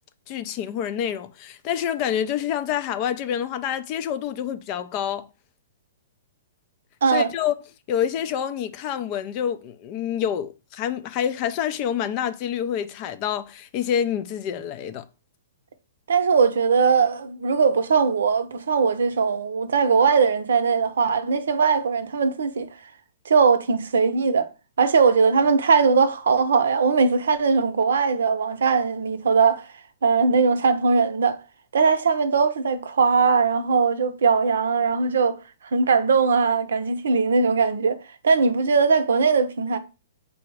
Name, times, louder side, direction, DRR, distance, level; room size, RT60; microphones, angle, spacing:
voice 1, 0.3-5.3 7.1-7.5 7.9-15.0, left 9 dB, 35° left, 0.4 m, -27 dB
voice 2, 16.1-22.7 23.3-24.5 24.8-29.6 30.0-31.4 31.7-35.4 35.7-38.0 38.2-39.8, right 5 dB, 80° right, 0.6 m, -20 dB
4.7 x 2.0 x 4.6 m
hypercardioid pair, 145°, 0 cm